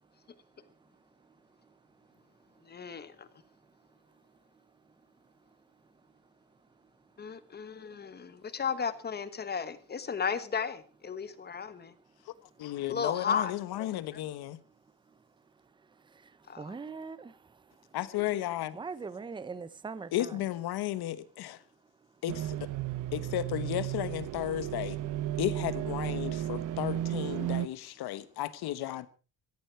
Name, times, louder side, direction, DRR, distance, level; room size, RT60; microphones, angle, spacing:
voice 1, 2.7-3.3 7.2-11.9 12.9-13.5 16.5-16.6, left 6 dB, 25° left, 1.2 m, -34 dB
voice 2, 12.6-14.6 17.9-18.8 20.1-21.6 22.2-22.7 23.1-25.0 25.4-29.1, left 13 dB, 90° left, 1.3 m, -34 dB
voice 3, 16.6-17.3 18.7-20.4, right 4 dB, 15° right, 0.7 m, -40 dB
sound 1, 22.3-27.7, right 13 dB, 55° right, 0.8 m, -34 dB
17.0 x 14.5 x 4.6 m
cardioid pair, 175°, 37 cm